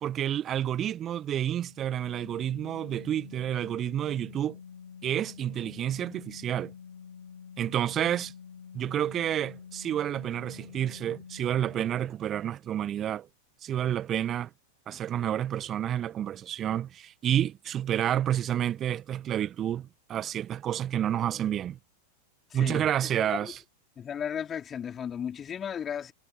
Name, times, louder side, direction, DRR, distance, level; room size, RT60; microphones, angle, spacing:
voice 1, 0.0-4.6 5.0-6.7 7.6-8.3 8.7-13.3 13.6-14.5 14.9-21.8 22.5-23.6, right 10 dB, 30° right, 1.6 m, -29 dB
Organ, 1.6-12.2, left 6 dB, 70° left, 3.6 m, -48 dB
voice 2, 22.5-23.5 24.0-26.1, left 8 dB, 25° left, 4.6 m, -35 dB
figure-of-eight pair, 90°, 0 cm